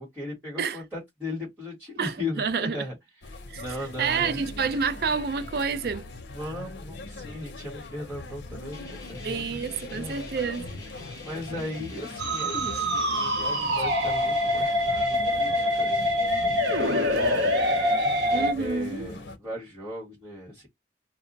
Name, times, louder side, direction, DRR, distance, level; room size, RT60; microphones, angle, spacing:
voice 1, 0.0-3.0 3.2-4.4 6.3-9.6 9.9-10.2 11.2-18.1 18.3-20.7, left 1 dB, 10° right, 1.1 m, -37 dB
voice 2, 2.0-2.8 3.5-3.6 4.0-6.0 9.2-10.7 18.3-19.1, right 5 dB, 60° right, 0.4 m, -28 dB
sound 1, 3.2-19.4, left 3 dB, 80° left, 0.6 m, -41 dB
sound 2, 8.7-18.5, left 1 dB, 20° left, 0.8 m, -45 dB
Musical instrument, 12.2-18.5, left 1 dB, 85° right, 0.8 m, -25 dB
2.1 x 2.1 x 3.8 m
head